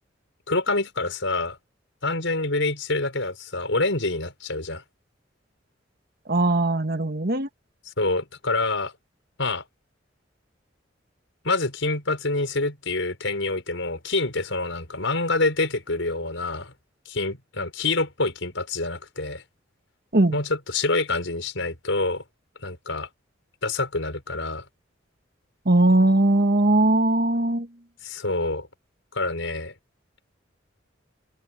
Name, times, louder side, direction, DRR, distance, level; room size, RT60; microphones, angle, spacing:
voice 1, 0.5-1.6 2.0-4.8 8.0-8.9 9.4-9.7 11.4-16.7 17.1-19.4 20.3-22.2 22.6-23.1 23.6-24.7 28.0-28.7 29.1-29.7, left 2 dB, 85° left, 5.2 m, -26 dB
voice 2, 6.3-7.5 20.1-20.4 25.7-27.7, right 2 dB, 55° right, 1.9 m, -20 dB
open air
head